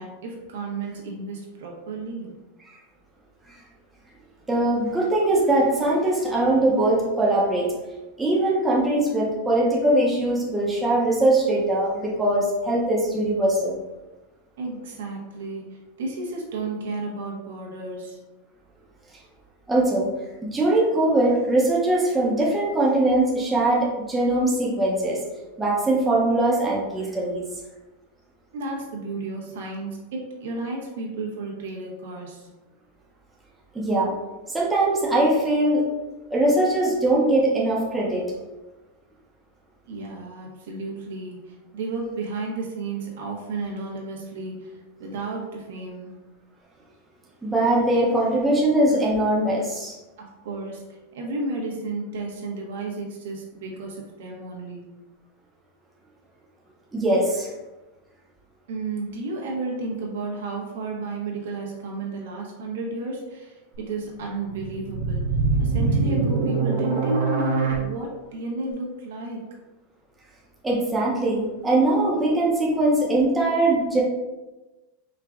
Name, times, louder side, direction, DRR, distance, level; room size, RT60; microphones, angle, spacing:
voice 1, 0.0-2.3 14.6-18.2 28.5-32.5 39.9-46.2 50.2-54.9 58.7-69.4, right 2 dB, 85° right, -1 dB, 1.2 m, -32 dB
voice 2, 4.5-7.7 8.2-13.8 19.7-20.1 20.4-25.2 25.6-27.4 33.7-34.1 34.5-35.9 36.3-38.2 47.4-49.9 56.9-57.5 70.6-74.0, right 1 dB, 10° right, -4 dB, 0.8 m, -21 dB
sound 1, 64.5-67.7, right 4 dB, 65° right, 1.1 m, -23 dB
4.7 x 2.4 x 3.7 m, 1.1 s
supercardioid pair, 155°, 0 cm